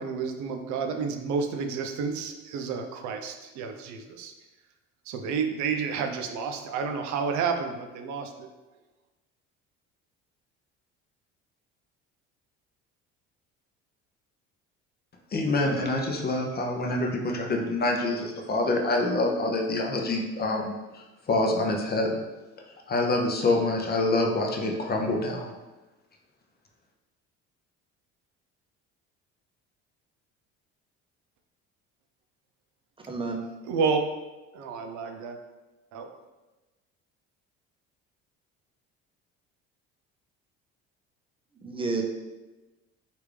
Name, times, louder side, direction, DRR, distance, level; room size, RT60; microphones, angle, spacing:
voice 1, 0.0-4.3 5.1-8.5 33.7-34.1 34.5-35.4 35.9-36.1, right 5 dB, 65° right, 5 dB, 0.5 m, -30 dB
voice 2, 15.3-22.2 22.9-25.5, left 2 dB, 30° left, 1 dB, 0.6 m, -26 dB
voice 3, 33.1-33.4 41.6-42.0, right 3 dB, 15° right, 2 dB, 0.6 m, -30 dB
3.2 x 2.5 x 3.3 m, 1.1 s
supercardioid pair, 80°, 31 cm